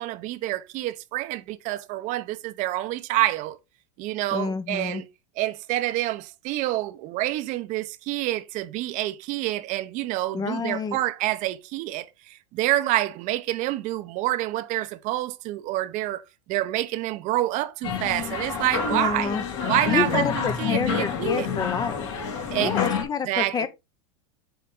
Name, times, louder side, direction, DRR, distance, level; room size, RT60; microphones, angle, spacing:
voice 1, 0.0-3.6 4.0-5.1 5.4-16.2 16.5-19.4 19.6-21.5 22.5-22.9 23.2-23.7, right 16 dB, 50° right, 0.8 m, -27 dB
voice 2, 4.3-5.0 10.3-11.0 18.9-19.4 19.9-22.1 22.6-23.7, left 6 dB, 25° left, 0.8 m, -28 dB
sound 1, 17.8-23.0, left 7 dB, 70° left, 3.5 m, -28 dB
7.9 x 4.6 x 3.8 m
supercardioid pair, 115°, 17 cm